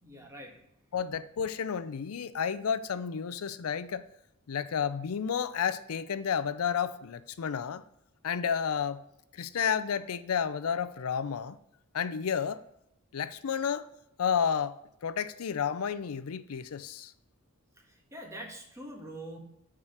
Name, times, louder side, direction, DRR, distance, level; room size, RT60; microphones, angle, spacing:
voice 1, 0.0-0.6 17.9-19.4, right 1 dB, 15° right, 1 dB, 1.5 m, -44 dB
voice 2, 0.9-4.1 4.5-7.8 8.2-9.0 9.3-11.6 11.9-12.6 13.1-13.9 14.2-17.1, left 7 dB, 80° left, 13 dB, 0.5 m, -31 dB
7.3 x 4.9 x 5.6 m, 0.78 s
head